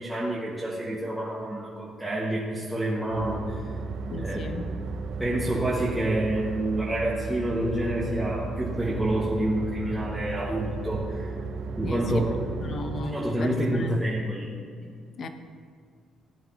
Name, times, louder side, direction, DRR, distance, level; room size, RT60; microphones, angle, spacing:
voice 1, 0.0-3.7 4.2-4.5 5.2-11.3 11.8-12.3 12.7-12.8 13.0-14.5 14.8-14.9, right 1 dB, 5° right, -8 dB, 1.8 m, -28 dB
sound 1, 3.1-13.0, right 4 dB, 60° right, 0.9 m, -34 dB
voice 2, 4.1-4.7 11.8-12.3 12.6-14.0 15.2-15.3, left 2 dB, 45° left, 7 dB, 0.9 m, -35 dB
17.0 x 10.0 x 3.0 m, 2.2 s
cardioid pair, 145°, 0 cm